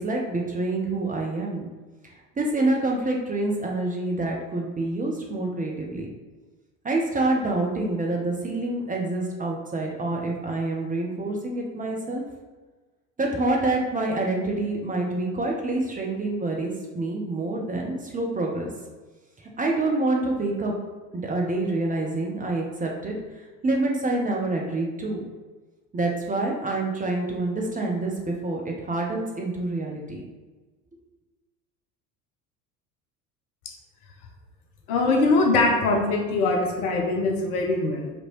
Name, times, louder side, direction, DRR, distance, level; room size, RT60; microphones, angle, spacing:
voice 1, 0.0-1.7 2.4-6.1 6.8-12.2 13.2-18.7 19.4-20.7 21.1-25.2 25.9-30.2, right 2 dB, 15° right, 0 dB, 0.7 m, -27 dB
voice 2, 34.9-38.1, left 3 dB, 65° left, 1 dB, 1.0 m, -22 dB
5.1 x 3.1 x 3.0 m, 1.3 s
figure-of-eight pair, 65°, 47 cm